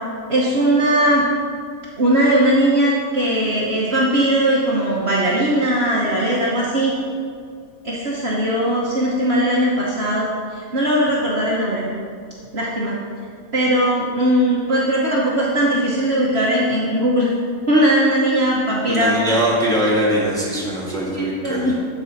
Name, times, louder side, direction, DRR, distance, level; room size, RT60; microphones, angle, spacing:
voice 1, 0.3-1.2 2.0-6.9 7.8-10.3 10.5-11.8 12.5-13.0 13.5-17.3 17.7-19.4 20.6-20.7 20.9-21.8, right 1 dB, 45° right, -5 dB, 1.2 m, -19 dB
voice 2, 18.9-21.7, equal, ahead, -5 dB, 1.5 m, -21 dB
11.5 x 4.9 x 4.1 m, 2.2 s
omnidirectional pair, 1.7 m